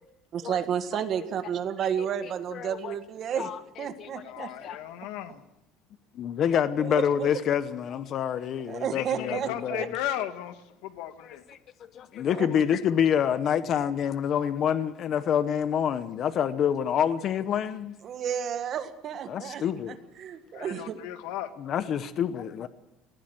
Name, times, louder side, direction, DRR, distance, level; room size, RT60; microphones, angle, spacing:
voice 1, 0.3-3.5 3.8-4.5 6.8-7.3 8.7-9.9 12.3-12.6 18.0-21.0, right 8 dB, 40° right, 1.7 m, -32 dB
voice 2, 2.5-2.9 3.4-3.6 4.0-4.1 4.4-4.8 6.2-9.9 11.2-11.6 11.9-18.0 19.3-20.0 21.6-22.7, left 9 dB, 40° left, 0.9 m, -27 dB
voice 3, 4.2-5.4 8.9-11.4 20.5-21.5, left 12 dB, 90° left, 1.6 m, -35 dB
19.0 x 15.0 x 9.3 m
cardioid pair, 160°, 0 cm